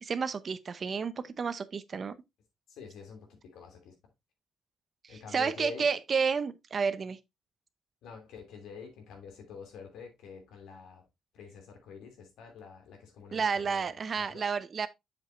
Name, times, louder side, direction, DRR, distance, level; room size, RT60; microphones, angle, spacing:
voice 1, 0.0-2.2 5.0-7.2 13.3-14.9, right 5 dB, 45° right, 0.7 m, -31 dB
voice 2, 2.7-3.9 5.1-5.9 8.0-11.0 11.3-14.4, left 5 dB, 85° left, 2.6 m, -47 dB
7.2 x 7.1 x 2.5 m
cardioid pair, 90°, 0 cm